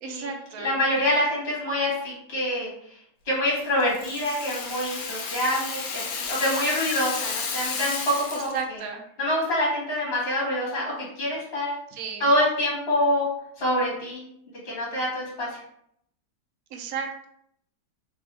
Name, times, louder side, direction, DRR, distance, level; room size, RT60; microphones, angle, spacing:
voice 1, 0.0-0.8 8.3-9.0 11.9-12.3 16.7-17.3, right 6 dB, 70° right, 3 dB, 1.0 m, -33 dB
voice 2, 0.6-2.7 3.2-8.5 9.2-11.7 12.2-13.3 13.6-14.3 14.6-15.6, left 1 dB, 40° left, -5 dB, 1.7 m, -26 dB
Rattle (instrument), 3.6-8.6, left 4 dB, 75° left, 1.3 m, -32 dB
3.3 x 3.0 x 3.2 m, 0.72 s
omnidirectional pair, 1.8 m